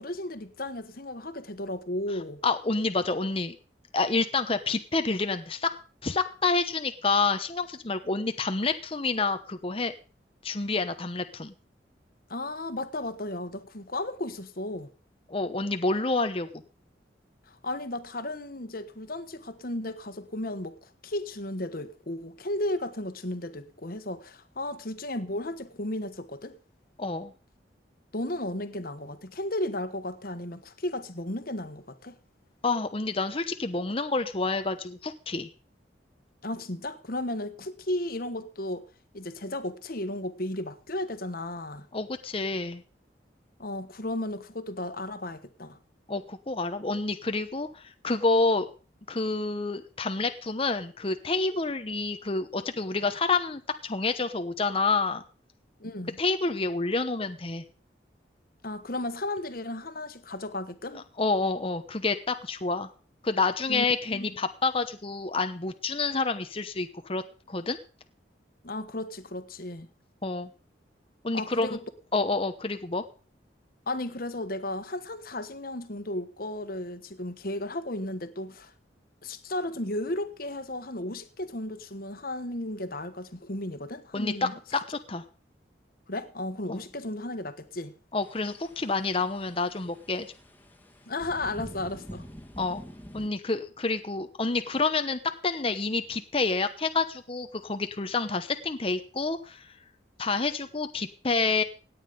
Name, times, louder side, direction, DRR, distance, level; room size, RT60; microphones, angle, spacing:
voice 1, 0.0-2.4 12.3-14.9 17.5-26.5 28.1-32.2 36.4-38.8 39.1-41.9 43.6-45.8 55.8-56.2 58.6-61.0 63.7-64.3 68.6-69.9 71.3-71.8 73.9-78.7 79.2-84.8 86.1-87.9 91.1-92.2, left 1 dB, 50° left, 1.4 m, -34 dB
voice 2, 2.4-3.5 3.9-5.7 6.0-9.9 10.4-11.5 15.3-16.5 27.0-27.3 32.6-35.5 41.9-42.8 46.1-48.7 49.1-55.2 56.2-57.6 60.9-62.9 63.2-67.2 67.5-67.8 70.2-70.5 71.2-71.8 72.1-73.0 84.1-85.2 86.7-86.8 88.1-90.3 92.6-92.8 93.1-99.7 100.2-101.6, left 3 dB, 30° left, 0.9 m, -28 dB
sound 1, 88.2-93.3, equal, 10° left, 1.9 m, -46 dB
17.5 x 9.4 x 5.2 m
head